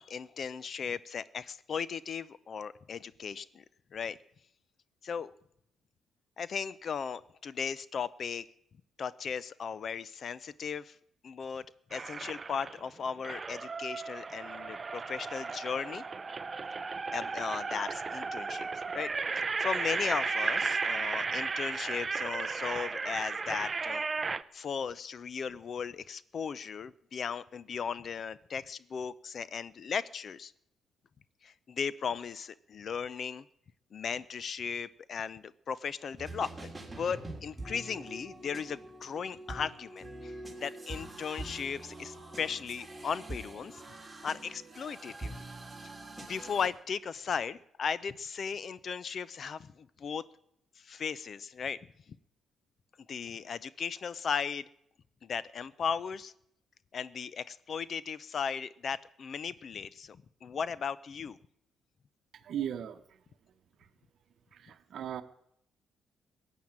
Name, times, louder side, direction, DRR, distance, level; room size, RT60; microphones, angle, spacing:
voice 1, 0.0-3.6 3.9-4.2 5.0-5.3 6.4-8.5 9.0-11.0 11.2-11.7 11.9-16.0 17.1-24.0 24.5-30.5 31.4-33.5 33.9-43.8 44.2-45.3 45.8-45.9 46.2-50.2 50.8-52.2 53.1-54.7 55.2-56.3 56.9-61.4, left 6 dB, 50° left, 19 dB, 0.6 m, -37 dB
sound 1, 11.9-12.8 13.2-24.4, right 4 dB, 30° right, 0.5 m, -34 dB
sound 2, 36.2-46.7, right 2 dB, 5° right, 3.4 m, -45 dB
voice 2, 62.3-63.2 63.8-63.9 64.5-65.2, right 10 dB, 65° right, 9 dB, 1.0 m, -38 dB
16.0 x 9.2 x 8.7 m, 0.75 s
cardioid pair, 90°, 0 cm